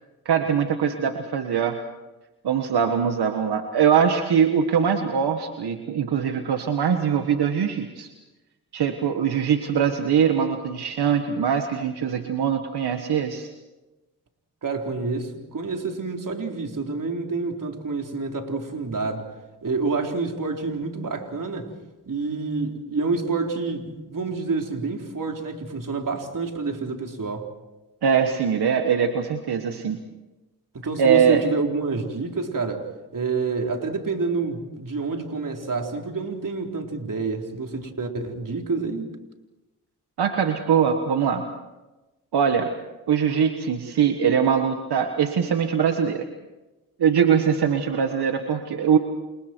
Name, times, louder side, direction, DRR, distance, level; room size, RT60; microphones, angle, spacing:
voice 1, 0.2-1.8 2.4-8.1 8.7-13.5 28.0-30.0 31.0-31.4 40.2-41.5 42.3-42.7 43.1-46.3 47.0-49.0, right 7 dB, 80° right, 5 dB, 1.6 m, -22 dB
voice 2, 14.6-19.3 19.6-21.7 22.1-27.5 30.7-39.1, right 4 dB, 55° right, 2 dB, 4.1 m, -28 dB
30.0 x 27.0 x 4.6 m, 1.1 s
cardioid pair, 50°, 38 cm